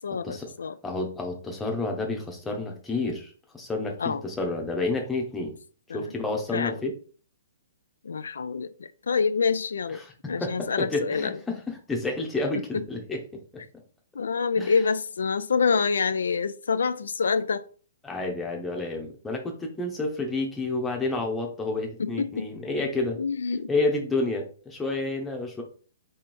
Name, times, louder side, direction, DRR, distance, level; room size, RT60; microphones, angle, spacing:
voice 1, 0.0-0.7 4.0-4.2 5.9-6.0 6.5-6.8 8.0-10.0 10.3-11.4 12.7-12.8 14.2-17.6 22.0-22.5 22.7-22.9 23.2-23.7, left 5 dB, 90° left, 0.3 m, -26 dB
voice 2, 0.8-5.6 5.9-6.9 10.0-13.2 13.5-13.6 14.6-14.8 18.0-23.2 23.7-25.6, left 2 dB, 10° left, 0.9 m, -30 dB
3.2 x 3.2 x 4.4 m
hypercardioid pair, 150°, 0 cm